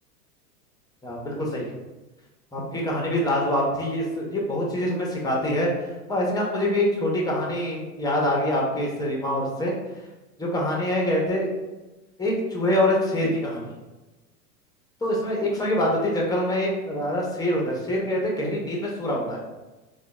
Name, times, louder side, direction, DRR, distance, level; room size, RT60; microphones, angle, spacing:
voice 1, 1.0-1.7 2.5-5.7 6.1-9.7 10.4-11.5 12.2-13.7 15.0-19.4, left 1 dB, 10° left, -2 dB, 0.7 m, -25 dB
3.8 x 2.3 x 3.5 m, 1.1 s
hypercardioid pair, 95°, 46 cm